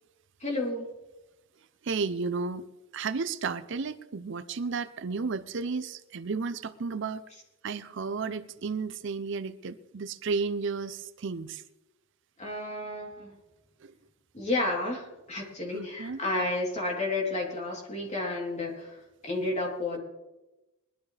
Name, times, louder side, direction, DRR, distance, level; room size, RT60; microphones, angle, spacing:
voice 1, 0.4-0.8 12.4-13.3 14.3-20.0, left 2 dB, 30° left, -2 dB, 3.3 m, -31 dB
voice 2, 1.8-2.7 2.9-7.2 7.6-11.6 13.8-13.9 15.7-16.2, right 4 dB, 60° right, 12 dB, 0.5 m, -33 dB
20.5 x 12.0 x 3.3 m, 1.0 s
head